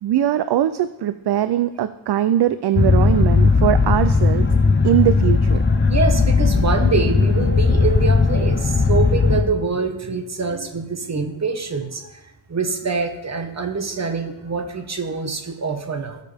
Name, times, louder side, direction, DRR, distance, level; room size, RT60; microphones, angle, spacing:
voice 1, 0.0-4.5 4.8-5.6, right 11 dB, 65° right, 12 dB, 0.5 m, -20 dB
sound 1, 2.8-9.4, left 4 dB, 25° left, 0.7 m, -17 dB
voice 2, 5.9-12.2 12.5-16.2, right 4 dB, 35° right, 5 dB, 1.3 m, -25 dB
18.5 x 6.7 x 3.4 m, 1.0 s
wide cardioid pair, 155°, 44 cm